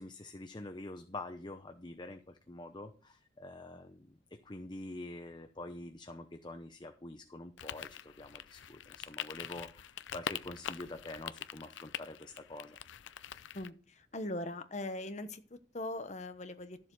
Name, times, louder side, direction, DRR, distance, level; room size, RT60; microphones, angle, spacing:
voice 1, 0.0-12.8, left 2 dB, 25° left, 7 dB, 0.7 m, -46 dB
sound 1, 7.6-13.7, left 9 dB, 90° left, 0.5 m, -44 dB
voice 2, 13.5-16.8, left 1 dB, 40° left, 9 dB, 1.1 m, -40 dB
13.0 x 7.3 x 4.7 m, 0.39 s
head